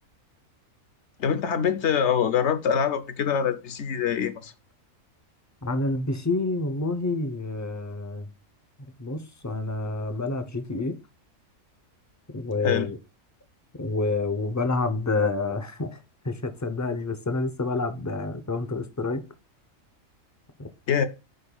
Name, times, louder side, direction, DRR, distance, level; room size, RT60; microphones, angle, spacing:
voice 1, 1.2-4.5 12.6-12.9 20.9-21.1, left 7 dB, 60° left, 1.0 m, -24 dB
voice 2, 5.6-8.3 9.0-11.0 12.3-13.0 13.8-16.0 16.2-19.2 20.6-20.7, left 3 dB, 20° left, 0.5 m, -28 dB
13.5 x 5.3 x 2.3 m
omnidirectional pair, 1.4 m